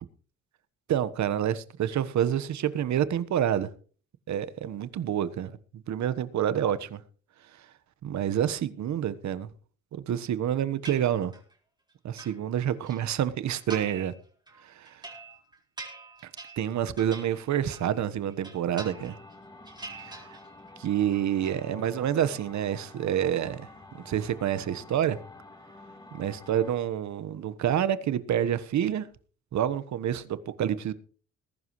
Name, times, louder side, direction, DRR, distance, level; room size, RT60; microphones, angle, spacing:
voice 1, 0.9-3.7 4.3-7.0 8.0-9.5 9.9-11.3 12.0-14.1 14.6-15.0 16.6-19.2 20.0-20.2 20.8-23.7 24.0-25.2 26.1-29.1 29.5-30.9, right 10 dB, 65° right, 1.3 m, -28 dB
sound 1, 10.8-11.5 11.9-13.0 13.5-14.1 14.5-18.0 18.3-19.3 19.6-20.7 21.0-21.6, right 3 dB, 15° right, 4.2 m, -45 dB
sound 2, 18.7-26.7, left 2 dB, 15° left, 4.0 m, -49 dB
20.5 x 11.0 x 3.1 m
cardioid pair, 90°, 30 cm